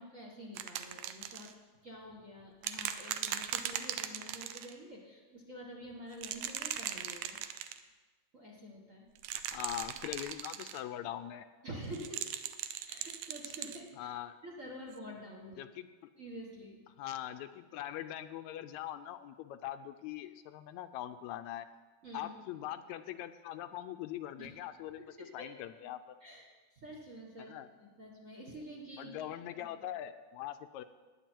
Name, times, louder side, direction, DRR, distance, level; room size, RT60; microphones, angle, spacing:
voice 1, 0.0-1.5 1.8-7.4 8.3-9.1 11.6-12.2 12.9-14.1 14.4-15.6 16.1-16.8 22.0-22.4 24.4-24.5 25.4-25.5 26.2-27.5 28.0-29.3 29.6-29.8, equal, 35° right, -2 dB, 1.4 m, -48 dB
sound 1, 0.6-1.5 2.6-4.7 6.1-7.8 9.2-10.8 11.9-13.8 14.9-15.0, right 10 dB, 75° right, 1.8 m, -39 dB
voice 2, 9.5-11.5 14.0-14.4 15.6-15.9 17.0-21.7 22.1-26.2 27.4-27.7 29.0-30.8, left 12 dB, 80° left, 10 dB, 1.8 m, -42 dB
19.0 x 8.9 x 4.5 m, 1.3 s
omnidirectional pair, 3.4 m